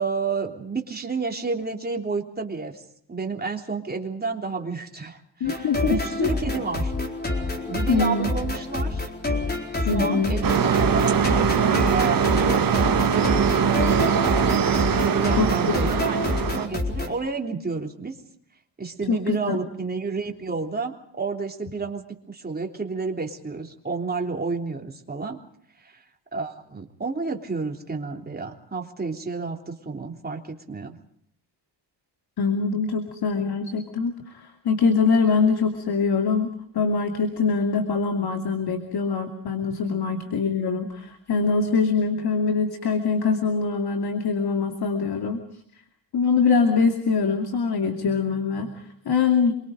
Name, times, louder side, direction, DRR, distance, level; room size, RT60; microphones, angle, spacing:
voice 1, 0.0-6.9 7.7-9.1 9.7-14.4 14.7-16.2 16.5-18.1 18.8-25.4 25.8-26.0 26.3-31.0, right 4 dB, 20° right, 2 dB, 3.4 m, -31 dB
voice 2, 5.4-6.3 7.9-8.3 9.8-10.3 15.4-15.8 19.1-19.6 32.4-45.4 46.1-49.5, left 5 dB, 60° left, 5 dB, 2.7 m, -23 dB
sound 1, 5.4-17.1, left 2 dB, 20° left, 4.3 m, -28 dB
sound 2, 10.4-16.7, right 7 dB, 50° right, 1.7 m, -22 dB
27.5 x 23.5 x 5.2 m, 0.67 s
cardioid pair, 125°, 43 cm